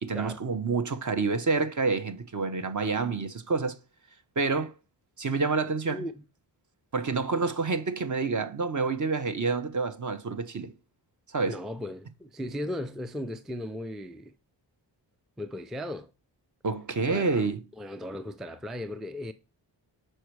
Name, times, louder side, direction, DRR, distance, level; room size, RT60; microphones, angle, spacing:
voice 1, 0.0-3.8 4.4-4.7 5.2-6.0 6.9-10.7 11.3-11.6 16.6-17.6, right 4 dB, 40° right, 0.9 m, -28 dB
voice 2, 11.5-14.3 15.4-16.1 17.1-17.4 17.8-19.3, left 1 dB, ahead, 0.4 m, -36 dB
6.4 x 4.5 x 4.6 m
wide cardioid pair, 80°, 44 cm